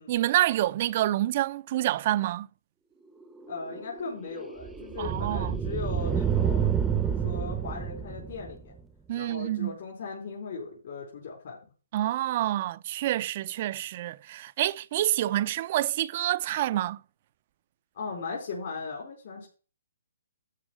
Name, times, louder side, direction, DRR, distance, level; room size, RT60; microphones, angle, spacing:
voice 1, 0.1-2.5 5.0-5.5 9.1-9.8 11.9-17.0, right 14 dB, 45° right, 0.5 m, -27 dB
sound 1, 3.2-8.8, right 8 dB, 10° right, 0.8 m, -29 dB
voice 2, 3.5-8.7 9.1-11.6 17.9-19.5, left 4 dB, 55° left, 4.6 m, -38 dB
13.0 x 4.7 x 6.2 m
hypercardioid pair, 145°, 0 cm